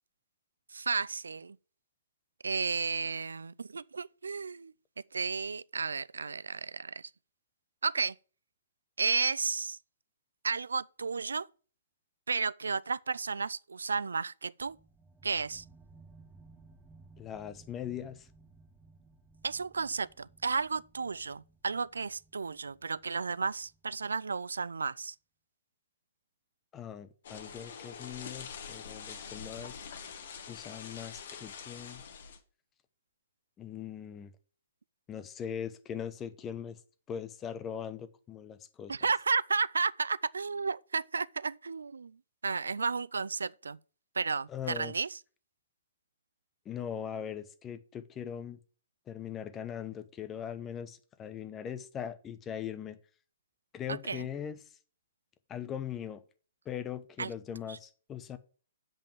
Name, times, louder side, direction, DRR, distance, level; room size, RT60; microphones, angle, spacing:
voice 1, 0.7-1.6 2.4-4.7 5.1-7.1 7.8-8.1 9.0-9.8 10.4-11.5 12.3-14.8 15.2-15.6 19.4-25.1 38.9-42.2 42.4-43.8 44.2-45.2 53.9-54.3 57.2-57.3 57.7-57.8, right 5 dB, 80° right, 0.4 m, -33 dB
sound 1, 14.6-24.4, right 3 dB, 10° right, 1.1 m, -59 dB
voice 2, 17.2-18.3 26.7-29.8 30.5-32.0 33.6-34.3 35.1-36.8 37.1-38.9 44.5-44.9 46.6-48.6 49.1-53.0 53.7-54.6 55.5-56.2 56.6-58.4, left 8 dB, 20° left, 0.9 m, -40 dB
sound 2, 27.2-32.4, left 6 dB, 55° left, 1.7 m, -45 dB
8.0 x 5.3 x 7.1 m
hypercardioid pair, 130°, 0 cm